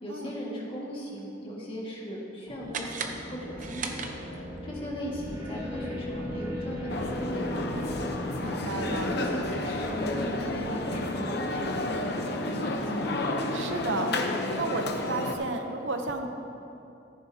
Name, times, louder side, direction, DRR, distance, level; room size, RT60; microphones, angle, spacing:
voice 1, 0.0-7.9 8.6-13.2, equal, 30° left, -5 dB, 1.9 m, -38 dB
sound 1, 2.5-12.7, left 1 dB, 15° right, 1.7 m, -38 dB
sound 2, 2.7-4.6, right 5 dB, 40° right, 0.6 m, -37 dB
sound 3, 6.9-15.3, left 2 dB, 60° left, 0.8 m, -31 dB
voice 2, 8.4-9.1 13.5-14.1 14.6-16.3, right 3 dB, 80° right, 5 dB, 0.8 m, -32 dB
14.0 x 10.0 x 2.9 m, 2.8 s
head